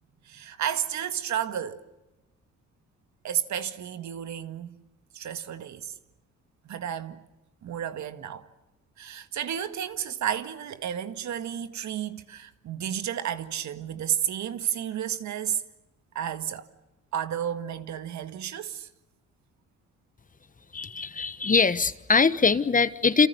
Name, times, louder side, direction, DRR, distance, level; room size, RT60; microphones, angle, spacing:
voice 1, 0.3-1.8 3.2-4.8 5.1-5.9 6.6-7.2 7.6-8.5 9.0-15.6 16.2-16.7 17.1-18.9, right 9 dB, 70° right, 1.9 m, -32 dB
voice 2, 20.7-23.3, left 4 dB, 25° left, 1.3 m, -22 dB
29.0 x 27.5 x 6.9 m
cardioid pair, 90°, 30 cm